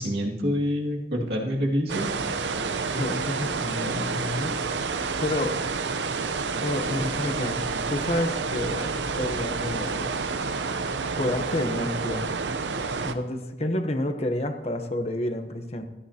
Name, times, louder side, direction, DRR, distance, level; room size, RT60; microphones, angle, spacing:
voice 1, 0.0-2.1, equal, 65° right, -2 dB, 2.3 m, -26 dB
sound 1, 1.9-13.1, right 4 dB, 90° right, 0.7 m, -29 dB
voice 2, 2.9-4.6 5.2-5.5 6.6-10.2 11.2-12.3 13.0-15.8, left 1 dB, 35° left, 6 dB, 1.0 m, -29 dB
17.0 x 13.5 x 2.9 m, 1.0 s
head